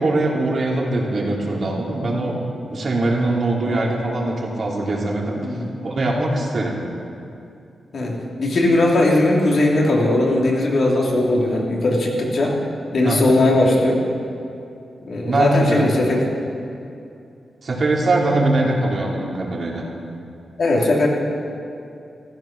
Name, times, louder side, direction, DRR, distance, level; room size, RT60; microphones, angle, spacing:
voice 1, 0.0-2.4 2.7-5.4 5.8-6.7 13.0-13.4 15.2-15.8 17.6-19.8, right 2 dB, 55° right, -3 dB, 3.2 m, -21 dB
voice 2, 7.9-12.6 12.9-14.0 15.0-16.2 20.6-21.1, left 2 dB, 65° left, -2 dB, 3.0 m, -19 dB
15.0 x 13.0 x 6.1 m, 2.6 s
cardioid pair, 80°, 0 cm